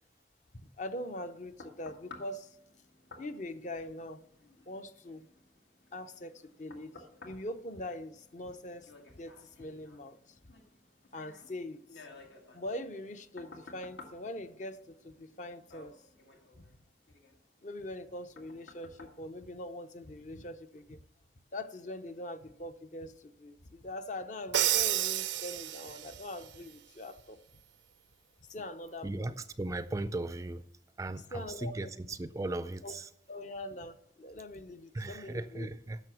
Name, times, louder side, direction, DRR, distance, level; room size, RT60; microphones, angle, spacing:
voice 1, 0.5-2.5 3.2-4.2 4.7-5.3 5.9-6.9 7.2-8.9 9.2-10.2 11.1-12.1 12.5-15.9 16.6-16.7 17.6-21.0 21.5-27.4 28.5-29.3 31.3-31.7 32.8-32.9 33.3-35.7, left 1 dB, 45° left, 10 dB, 0.6 m, -42 dB
sound 1, 0.9-20.2 20.7-20.8, left 3 dB, 80° left, 1.8 m, -56 dB
Crash cymbal, 24.5-26.2, right 13 dB, 90° right, 0.5 m, -30 dB
voice 2, 29.0-30.6 31.0-33.1 34.9-36.0, right 2 dB, 20° right, 13 dB, 0.3 m, -37 dB
10.5 x 6.7 x 6.2 m, 0.79 s
head